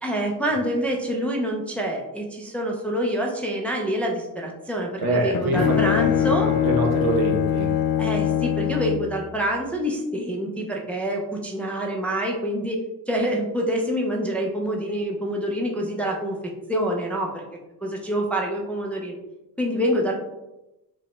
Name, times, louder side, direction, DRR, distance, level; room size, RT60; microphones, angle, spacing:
voice 1, 0.0-6.5 8.0-12.8 13.1-16.4 16.7-17.4 17.8-19.1 19.6-20.2, equal, 5° left, -1 dB, 0.3 m, -26 dB
Bowed string instrument, 5.0-9.2, left 10 dB, 65° left, 0.5 m, -23 dB
voice 2, 5.0-7.7, right 2 dB, 75° right, 2 dB, 0.9 m, -25 dB
4.8 x 2.2 x 3.0 m, 0.96 s
cardioid pair, 150°, 37 cm